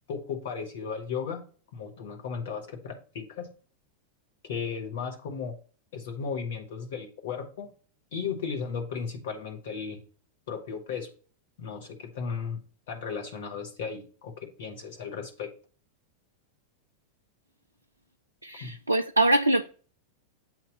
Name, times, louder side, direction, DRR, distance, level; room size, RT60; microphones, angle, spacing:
voice 1, 0.1-1.4 1.7-3.5 4.4-5.5 5.9-7.7 8.1-10.0 10.5-11.1 11.6-12.6 12.9-15.5 18.6-18.7, left 6 dB, 55° left, 1.6 m, -35 dB
voice 2, 18.4-19.6, right 2 dB, 85° right, 0.3 m, -23 dB
7.9 x 3.0 x 5.2 m
figure-of-eight pair, 90°, 0 cm